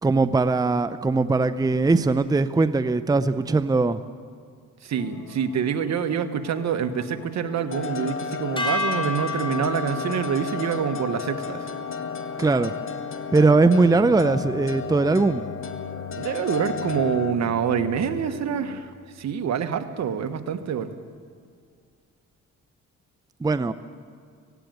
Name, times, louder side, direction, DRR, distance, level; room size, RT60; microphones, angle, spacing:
voice 1, 0.0-4.0 12.4-12.7 13.3-15.4 23.4-23.7, right 3 dB, 10° right, 13 dB, 0.6 m, -20 dB
voice 2, 4.8-11.6 16.1-18.9 19.2-20.9, right 7 dB, 65° right, 9 dB, 1.4 m, -26 dB
sound 1, 4.9-18.8, left 7 dB, 80° left, 1.4 m, -42 dB
sound 2, 7.7-17.3, left 6 dB, 45° left, 1.1 m, -33 dB
sound 3, 8.6-14.9, left 3 dB, 15° left, 4.0 m, -34 dB
17.0 x 17.0 x 9.3 m, 2.2 s
cardioid pair, 90°, 30 cm